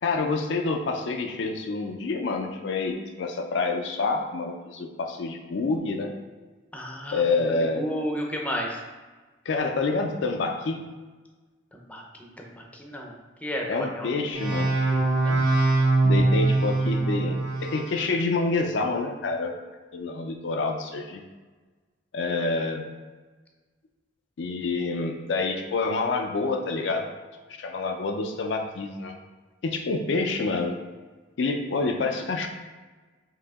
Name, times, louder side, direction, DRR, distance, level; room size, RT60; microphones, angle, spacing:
voice 1, 0.0-6.2 7.1-7.9 9.5-10.8 13.7-15.0 16.0-19.6 19.9-21.2 22.1-22.9 24.4-27.1 27.6-29.2 29.6-30.8 31.4-32.5, left 3 dB, 70° left, 4 dB, 0.4 m, -27 dB
voice 2, 6.7-7.2 7.7-8.8 11.9-13.1 13.4-14.1 14.9-15.4, equal, 5° left, 0 dB, 0.5 m, -33 dB
sound 1, 14.3-17.9, right 2 dB, 85° right, 1.5 m, -22 dB
4.8 x 2.8 x 3.5 m, 1.3 s
head